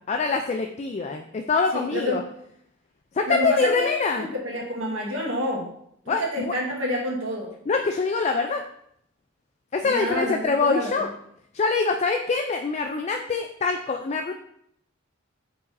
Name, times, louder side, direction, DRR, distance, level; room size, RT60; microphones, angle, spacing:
voice 1, 0.1-2.2 3.2-4.2 6.1-6.5 7.7-8.6 9.7-11.1 11.5-14.3, left 4 dB, 35° left, 4 dB, 0.4 m, -24 dB
voice 2, 1.7-2.2 3.3-3.9 4.2-5.7 6.1-7.5 9.8-11.1, equal, 75° right, -3 dB, 1.5 m, -28 dB
8.3 x 4.7 x 2.6 m, 0.72 s
head